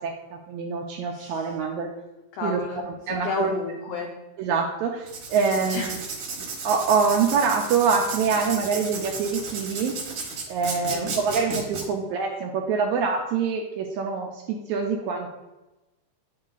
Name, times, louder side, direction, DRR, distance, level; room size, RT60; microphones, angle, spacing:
voice 1, 0.0-1.9 2.4-2.6 3.1-3.5 4.4-6.0 6.4-9.9 10.5-15.3, right 5 dB, 80° right, 2 dB, 1.7 m, -25 dB
voice 2, 1.1-1.5 2.3-4.1 5.7-5.9 10.9-11.2, left 4 dB, 90° left, 1 dB, 1.4 m, -32 dB
Writing, 5.0-11.8, right 4 dB, 60° right, 2.2 m, -34 dB
9.7 x 3.2 x 3.8 m, 1.0 s
omnidirectional pair, 3.8 m